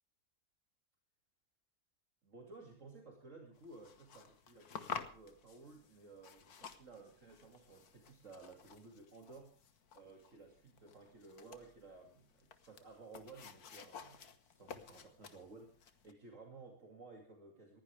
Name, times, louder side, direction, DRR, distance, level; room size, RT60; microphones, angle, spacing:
voice 1, 2.2-9.5 9.9-17.8, right 3 dB, 50° right, 1 dB, 2.8 m, -56 dB
sound 1, 3.5-16.1, left 6 dB, 70° left, 1.9 m, -52 dB
20.5 x 16.0 x 3.4 m, 0.42 s
omnidirectional pair, 1.7 m